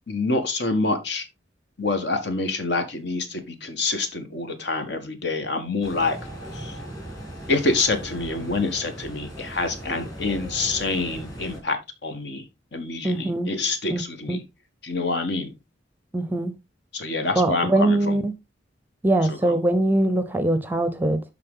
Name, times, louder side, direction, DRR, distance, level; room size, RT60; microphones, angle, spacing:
voice 1, 0.1-1.3 1.8-6.2 6.5-6.8 7.5-14.4 14.8-15.6 16.9-18.2 19.3-19.6, left 3 dB, 60° left, 1.5 m, -27 dB
sound 1, 5.8-11.6, equal, 20° left, 3.2 m, -38 dB
voice 2, 13.0-13.5 13.9-14.0 14.3-14.4 16.1-16.6 17.3-18.3 19.0-21.2, right 1 dB, 10° right, 0.6 m, -22 dB
11.5 x 3.8 x 3.7 m
head